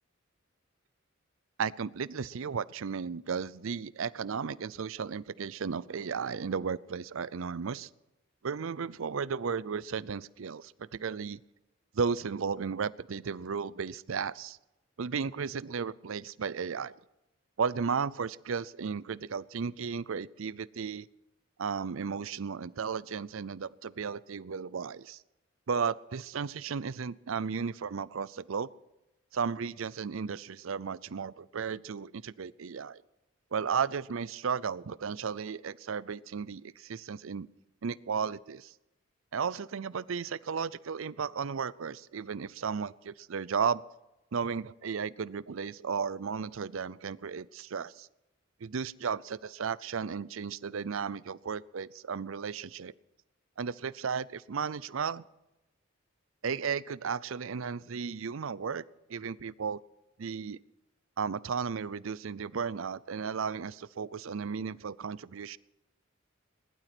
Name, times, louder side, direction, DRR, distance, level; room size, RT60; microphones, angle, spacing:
voice 1, 1.6-7.9 8.4-11.4 11.9-14.6 15.0-16.9 17.6-21.1 21.6-25.2 25.7-28.7 29.3-33.0 33.5-37.5 37.8-38.7 39.3-43.8 44.3-48.1 48.6-52.9 53.6-55.2 56.4-58.8 59.1-59.8 60.2-60.6 61.2-65.6, right 6 dB, 70° right, 20 dB, 0.5 m, -34 dB
19.5 x 12.0 x 6.0 m, 0.98 s
head